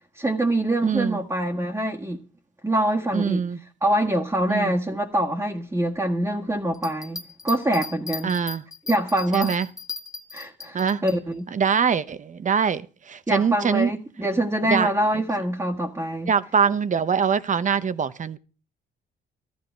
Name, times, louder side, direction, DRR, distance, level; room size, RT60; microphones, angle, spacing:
voice 1, 0.2-2.2 2.6-3.5 3.8-8.3 8.9-9.6 10.3-11.5 13.3-16.3, right 1 dB, 15° right, 1.6 m, -25 dB
voice 2, 0.8-1.2 3.1-3.6 4.5-4.7 8.2-8.6 9.3-9.7 10.7-11.0 11.5-13.9 14.7-14.9 16.3-18.4, right 6 dB, 40° right, 0.9 m, -23 dB
Bell, 6.7-11.2 11.7-11.8, left 4 dB, 20° left, 1.2 m, -37 dB
14.0 x 12.5 x 4.6 m
cardioid pair, 90°, 20 cm